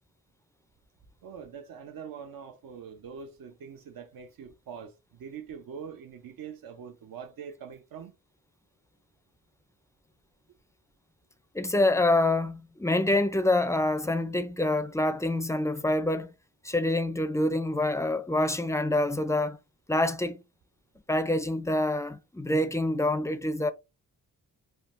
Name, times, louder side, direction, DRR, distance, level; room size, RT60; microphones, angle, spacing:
voice 1, 1.2-8.2, right 7 dB, 70° right, 0.6 m, -43 dB
voice 2, 11.5-16.3 16.6-19.6 19.9-20.4 21.1-23.7, left 1 dB, 10° left, 0.4 m, -26 dB
3.6 x 2.1 x 2.4 m
cardioid pair, 60°, 37 cm